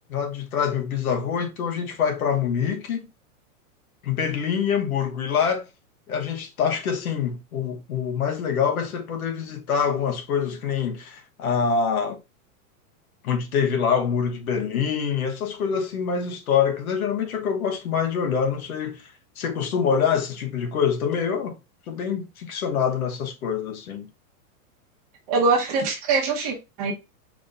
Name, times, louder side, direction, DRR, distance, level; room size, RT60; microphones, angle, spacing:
voice 1, 0.1-3.1 4.0-5.7 6.1-12.2 13.2-21.6 21.9-24.1, left 7 dB, 70° left, 1.4 m, -25 dB
voice 2, 25.3-26.9, right 4 dB, 25° right, 0.8 m, -23 dB
4.9 x 2.8 x 3.4 m
supercardioid pair, 180°, 45 cm